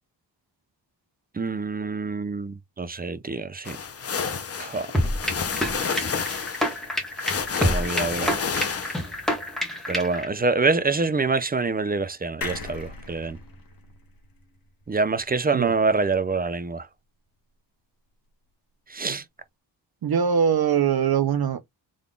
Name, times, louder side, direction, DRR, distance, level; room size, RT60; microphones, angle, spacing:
voice 1, 1.3-3.8 4.6-4.9 7.6-8.4 9.9-13.4 14.9-16.9 18.9-19.2, right 4 dB, 20° right, 0.4 m, -26 dB
sound 1, 3.7-9.3, left 6 dB, 35° left, 0.6 m, -30 dB
sound 2, 4.9-10.3, equal, ahead, 1.4 m, -27 dB
sound 3, 12.4-15.9 16.3-16.4 16.6-16.7, left 4 dB, 50° left, 1.4 m, -40 dB
voice 2, 20.0-21.6, right 7 dB, 55° right, 0.7 m, -22 dB
3.8 x 3.5 x 2.3 m
wide cardioid pair, 100°, 44 cm